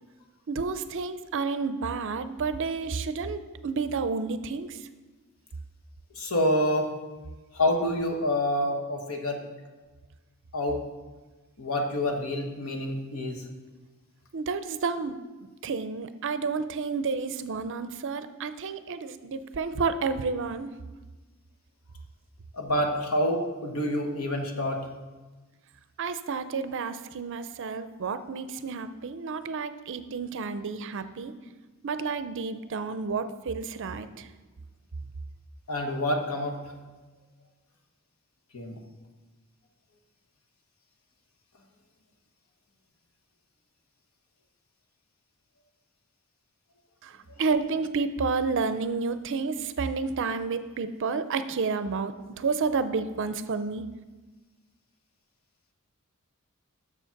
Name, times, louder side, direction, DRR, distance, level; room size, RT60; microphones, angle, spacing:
voice 1, 0.5-4.9 14.3-15.2 15.6-20.7 26.0-31.3 31.8-34.3 47.0-53.8, right 4 dB, 60° right, 11 dB, 0.5 m, -30 dB
voice 2, 6.1-6.9 7.5-9.4 10.5-10.8 11.6-13.4 22.5-24.8 35.7-36.7 38.5-38.8, left 1 dB, 70° left, 3 dB, 1.3 m, -27 dB
7.2 x 6.7 x 5.8 m, 1.2 s
head